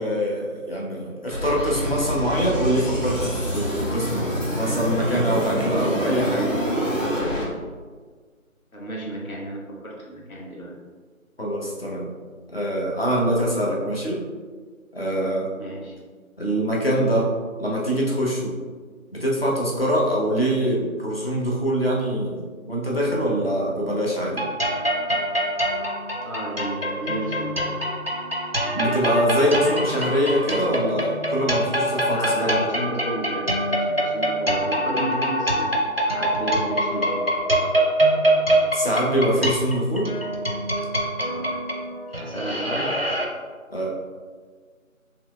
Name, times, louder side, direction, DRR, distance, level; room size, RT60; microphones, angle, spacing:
voice 1, 0.0-6.5 11.4-12.1 12.5-14.3 14.9-15.5 16.4-17.3 17.6-18.6 19.1-24.5 28.7-32.6 38.7-40.1 43.7-43.9, equal, 45° left, -3 dB, 0.7 m, -24 dB
sound 1, 1.3-7.4, equal, 65° left, 1.2 m, -26 dB
voice 2, 8.7-10.8 15.6-15.9 26.2-27.6 32.1-35.8 36.1-37.3 41.2-41.6 42.2-43.0, right 1 dB, 80° left, -3 dB, 1.1 m, -33 dB
sound 2, 24.3-43.3, right 1 dB, 50° right, 0.4 m, -24 dB
5.5 x 2.9 x 2.3 m, 1.5 s
figure-of-eight pair, 175°, 42 cm